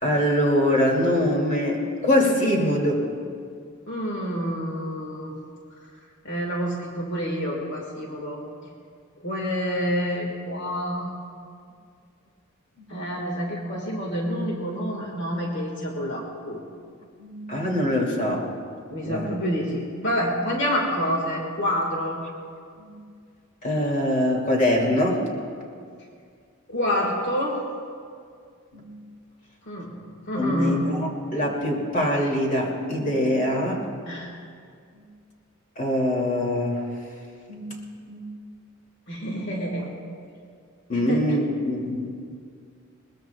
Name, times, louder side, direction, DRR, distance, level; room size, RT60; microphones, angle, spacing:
voice 1, 0.0-3.0 12.8-12.9 17.2-18.5 19.0-19.4 22.8-22.9 23.6-25.2 28.7-29.0 30.4-33.8 34.9-35.0 35.8-36.8 37.5-37.7 38.1-38.3 40.9-42.1, left 1 dB, 40° left, -2 dB, 2.6 m, -23 dB
voice 2, 3.9-5.3 6.2-8.4 9.2-11.1 12.9-16.6 18.9-22.2 26.7-27.6 29.7-29.9 30.3-30.9 34.1-34.3 39.1-39.9 40.9-41.4, equal, 60° left, -1 dB, 1.8 m, -28 dB
21.0 x 20.5 x 2.3 m, 2.2 s
head